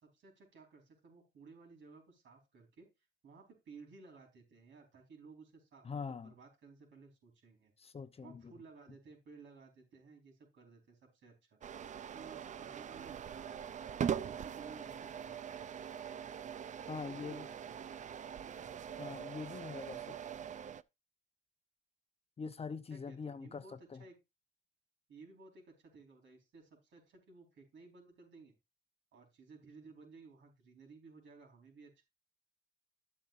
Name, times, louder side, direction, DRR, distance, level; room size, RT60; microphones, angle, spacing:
voice 1, 0.0-2.9 3.2-7.7 8.2-11.6 12.1-13.6 14.2-15.5 16.9-17.8 22.9-24.2 25.1-28.5 29.1-32.0, right 4 dB, 70° right, 4.4 m, -57 dB
voice 2, 5.8-6.3 7.8-8.5 16.9-17.5 19.0-20.2 22.4-24.0, left 5 dB, 30° left, 0.7 m, -44 dB
sound 1, 11.6-20.8, right 8 dB, 40° right, 0.4 m, -42 dB
12.0 x 8.0 x 2.5 m
cardioid pair, 90°, 20 cm